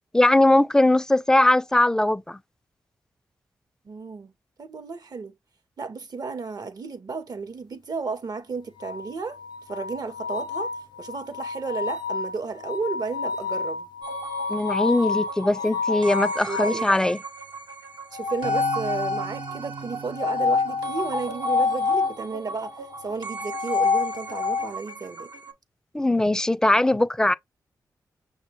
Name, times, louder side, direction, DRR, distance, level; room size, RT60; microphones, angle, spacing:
voice 1, 0.1-2.4 14.5-17.2 25.9-27.3, left 1 dB, 10° left, 0.3 m, -20 dB
voice 2, 3.8-4.3 4.6-5.3 5.8-9.4 9.7-10.7 11.0-13.9 16.5-16.8 18.1-22.8 23.0-25.3, right 4 dB, 55° right, 0.7 m, -33 dB
sound 1, 8.8-16.9 18.1-19.4 20.2-22.1 23.3-24.7, left 4 dB, 75° left, 0.5 m, -28 dB
sound 2, 14.0-25.5, right 4 dB, 90° right, 0.9 m, -37 dB
5.9 x 2.1 x 2.9 m
cardioid pair, 50°, 8 cm